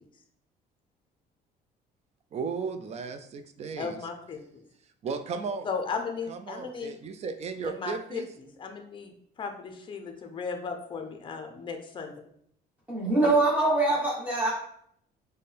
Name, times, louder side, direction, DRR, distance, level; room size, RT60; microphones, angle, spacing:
voice 1, 2.3-4.0 5.0-5.7 6.3-8.3, right 5 dB, 40° right, 9 dB, 0.4 m, -35 dB
voice 2, 3.8-4.4 5.6-6.9 7.6-12.1, left 5 dB, 30° left, 5 dB, 0.6 m, -36 dB
voice 3, 12.9-14.5, right 2 dB, 10° right, -6 dB, 1.1 m, -23 dB
4.2 x 2.2 x 3.3 m, 0.69 s
cardioid pair, 110°, 17 cm